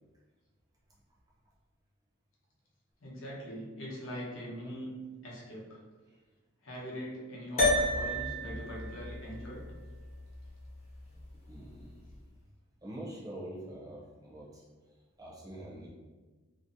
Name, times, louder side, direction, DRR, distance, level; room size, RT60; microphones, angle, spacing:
voice 1, 3.0-4.9 5.2-5.8 6.6-9.6, equal, 65° left, -4 dB, 0.7 m, -42 dB
sound 1, 7.6-12.2, left 1 dB, 30° left, 0.5 m, -33 dB
voice 2, 11.4-12.2 12.8-14.6 15.2-15.9, right 1 dB, 15° right, -6 dB, 0.5 m, -45 dB
2.6 x 2.0 x 2.5 m, 1.3 s
head